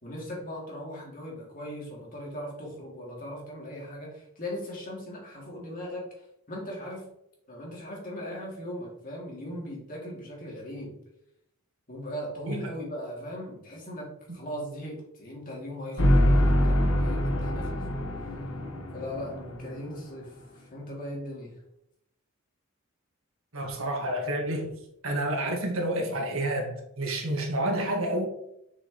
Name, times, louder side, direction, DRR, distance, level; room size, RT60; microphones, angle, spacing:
voice 1, 0.0-6.1 6.5-7.0 7.5-10.9 11.9-18.0 18.9-21.5, equal, 40° left, 2.6 m, -39 dB
sound 1, 16.0-20.1, equal, 75° left, 1.2 m, -25 dB
voice 2, 23.5-24.8 25.0-28.2, right 1 dB, 70° right, 1.8 m, -29 dB
6.8 x 6.8 x 3.1 m
head